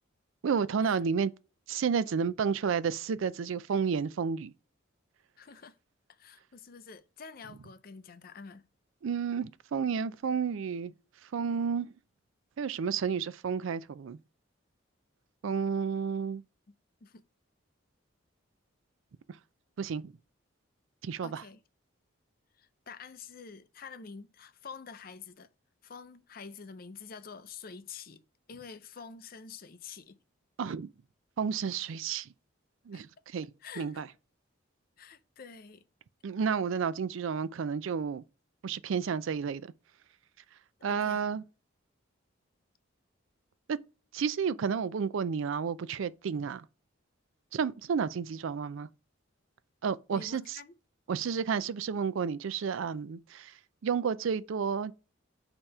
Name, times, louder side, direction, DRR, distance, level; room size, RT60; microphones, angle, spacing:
voice 1, 0.4-1.3 1.7-4.5 9.0-11.9 12.6-14.2 15.4-16.4 19.3-19.4 19.8-20.1 21.0-21.4 30.6-30.9 31.4-32.3 32.9-34.1 36.2-38.2 38.6-39.7 40.5-41.4 43.7-43.8 44.1-46.7 47.5-48.9 49.8-50.6 51.1-54.9, right 6 dB, 70° right, 0.4 m, -31 dB
voice 2, 5.4-5.8 6.1-8.7 17.0-17.2 21.2-21.6 22.6-25.5 25.8-28.2 28.5-30.2 32.9-33.0 33.6-34.0 35.0-35.8 40.9-41.2 50.1-50.7, left 5 dB, 45° left, 0.5 m, -47 dB
6.6 x 3.0 x 5.3 m
head